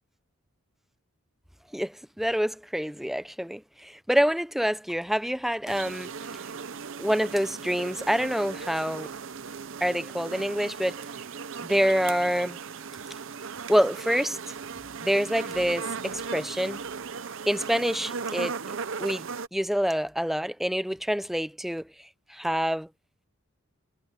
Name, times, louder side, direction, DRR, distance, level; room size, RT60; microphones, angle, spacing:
voice 1, 1.7-6.1 7.0-9.1 9.8-11.0 11.6-12.6 13.7-14.4 15.0-16.8 17.5-18.6 19.0-19.3 19.5-21.8 22.3-22.9, equal, ahead, 0.5 m, -26 dB
sound 1, 5.7-19.5, right 5 dB, 60° right, 0.7 m, -37 dB
head